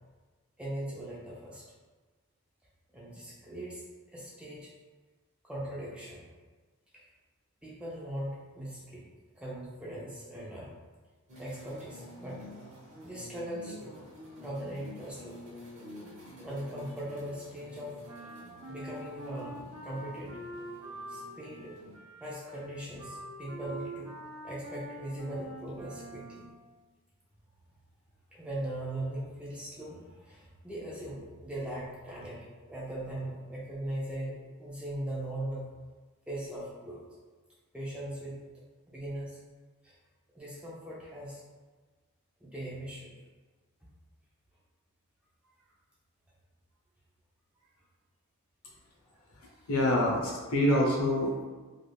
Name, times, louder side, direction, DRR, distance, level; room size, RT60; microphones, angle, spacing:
voice 1, 0.6-1.7 2.9-4.7 5.4-6.3 6.9-7.0 7.6-9.0 9.4-10.8 11.4-12.5 13.0-14.1 14.4-15.4 16.4-18.0 18.7-19.5 19.8-20.4 21.1-21.7 22.2-24.1 24.4-26.5 28.3-35.7 36.3-37.1 37.7-38.4 38.9-39.4 39.8-40.0 40.3-41.4 42.4-43.1 45.4-45.5 49.1-49.2 49.6-49.7, right 1 dB, 5° right, -6 dB, 0.4 m, -40 dB
sound 1, 11.3-22.0, left 1 dB, 35° right, 0.7 m, -49 dB
Wind instrument woodwind instrument, 18.0-26.6, right 2 dB, 70° right, 0.7 m, -45 dB
voice 2, 49.4-51.4, left 1 dB, 70° left, -3 dB, 0.7 m, -27 dB
2.4 x 2.4 x 3.3 m, 1.3 s
head